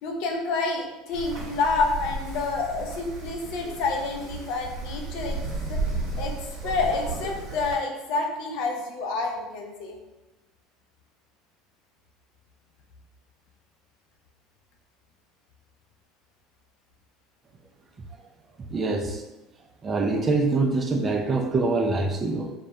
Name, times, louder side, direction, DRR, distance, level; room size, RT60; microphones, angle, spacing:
voice 1, 0.0-5.4 5.7-5.8 6.2-6.3 6.6-10.0, left 3 dB, 65° left, 2 dB, 0.4 m, -28 dB
Wind, 1.1-7.7, right 2 dB, 55° right, 0.9 m, -33 dB
voice 2, 18.7-19.2 19.8-22.5, right 3 dB, 30° right, 3 dB, 0.3 m, -24 dB
2.2 x 2.1 x 2.7 m, 1.0 s
hypercardioid pair, 80°, 0 cm